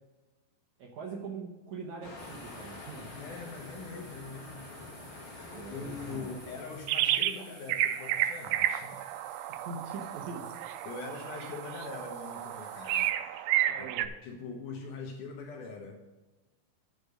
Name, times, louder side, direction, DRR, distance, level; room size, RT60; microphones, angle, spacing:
voice 1, 0.8-3.1 5.5-6.3 9.5-10.6 13.7-14.1, right 4 dB, 65° right, 0 dB, 2.0 m, -42 dB
Waves surf, 2.0-7.1, left 3 dB, 40° left, 2.2 m, -46 dB
sound 1, 2.2-13.1, right 3 dB, 50° right, 3.6 m, -55 dB
voice 2, 3.1-4.7 5.1-5.3 5.7-9.1 10.8-13.9 14.2-16.0, left 4 dB, 70° left, 1 dB, 2.2 m, -43 dB
sound 2, 6.9-7.4 7.7-14.1, right 12 dB, 90° right, 2.5 m, -31 dB
9.7 x 5.2 x 6.5 m, 1.2 s
omnidirectional pair, 4.3 m